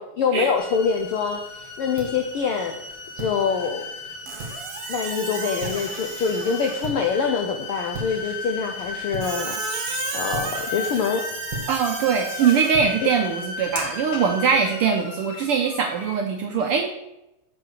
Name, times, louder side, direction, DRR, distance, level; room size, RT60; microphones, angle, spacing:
voice 1, 0.0-2.7 3.2-3.9 4.9-9.6 10.1-11.2, left 6 dB, 85° left, 4 dB, 1.2 m, -25 dB
sound 1, 0.6-16.2, left 4 dB, 55° left, 2.4 m, -35 dB
sound 2, 0.8-14.2, right 2 dB, 45° right, 2.3 m, -40 dB
Squeak, 4.3-7.0 9.2-12.7, right 6 dB, 60° right, 1.8 m, -34 dB
voice 2, 11.7-16.9, right 6 dB, 75° right, 3 dB, 1.3 m, -22 dB
7.6 x 5.5 x 6.5 m, 0.91 s
omnidirectional pair, 3.3 m